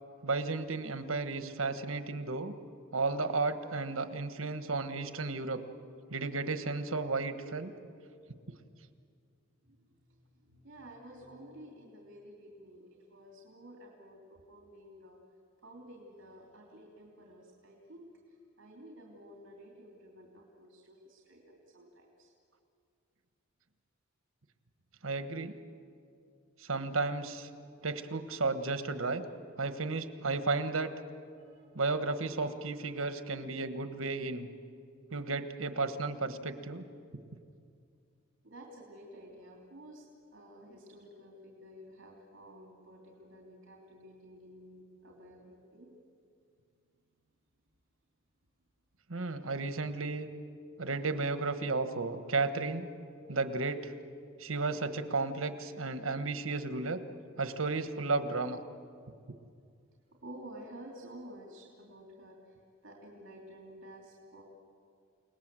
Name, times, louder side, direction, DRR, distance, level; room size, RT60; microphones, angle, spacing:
voice 1, 0.2-2.5 2.9-5.6 6.1-7.7 25.0-25.5 26.6-27.5 27.8-29.2 29.6-30.9 31.7-34.5 35.1-36.8 49.1-50.3 50.8-52.8 53.3-53.9 54.4-57.0 57.4-58.6, right 3 dB, 90° right, 10 dB, 1.4 m, -33 dB
voice 2, 9.6-15.2 15.6-22.3 31.4-31.7 38.4-40.1 40.3-46.0 60.1-62.5 62.8-64.4, right 1 dB, 65° right, -1 dB, 3.2 m, -52 dB
29.5 x 19.0 x 7.7 m, 2.4 s
head